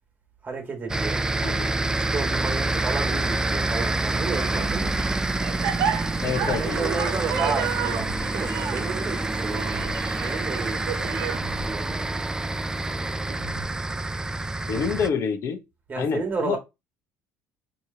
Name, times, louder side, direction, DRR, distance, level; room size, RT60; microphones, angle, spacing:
voice 1, 0.4-1.2 2.1-5.0 6.5-9.8 10.2-11.3 11.6-12.1 15.9-16.6, right 4 dB, 30° right, 1.6 m, -32 dB
sound 1, 0.9-15.1, right 2 dB, 10° right, 0.3 m, -27 dB
sound 2, 4.4-11.4, right 8 dB, 85° right, 0.8 m, -32 dB
sound 3, 4.5-5.2 6.2-6.9 7.8-8.5 9.6-10.2 11.3-12.0 13.3-13.9, right 1 dB, 55° right, 0.8 m, -41 dB
voice 2, 6.2-6.9 14.7-15.6 16.0-16.6, left 6 dB, 55° left, 0.9 m, -27 dB
4.7 x 3.0 x 2.7 m
cardioid pair, 100°, 6 cm